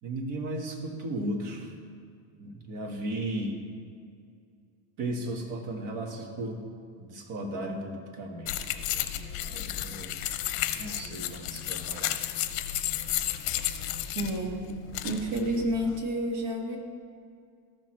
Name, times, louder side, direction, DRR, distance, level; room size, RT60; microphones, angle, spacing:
voice 1, 0.0-1.7 2.4-3.6 5.0-6.6 7.0-8.5 9.4-10.2 10.8-12.2, right 1 dB, 50° right, 2 dB, 1.5 m, -35 dB
sound 1, 8.5-16.0, left 12 dB, 70° left, 0.7 m, -33 dB
voice 2, 14.2-14.6 15.0-16.8, right 1 dB, 85° right, 0 dB, 1.8 m, -29 dB
14.0 x 6.0 x 3.2 m, 2.3 s
cardioid pair, 145°, 42 cm